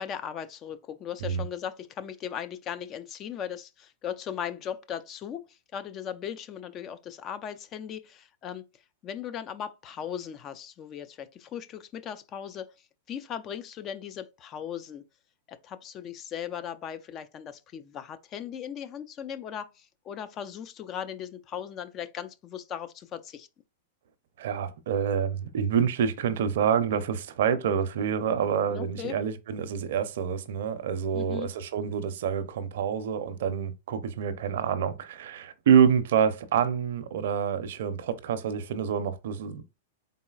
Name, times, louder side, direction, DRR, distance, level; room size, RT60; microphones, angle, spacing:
voice 1, 0.0-8.7 9.0-15.0 15.5-23.5 28.7-29.2 31.1-31.5, left 9 dB, 30° left, 0.4 m, -38 dB
voice 2, 24.4-39.6, right 7 dB, 70° right, 0.6 m, -27 dB
4.1 x 3.8 x 2.3 m
hypercardioid pair, 125°, 0 cm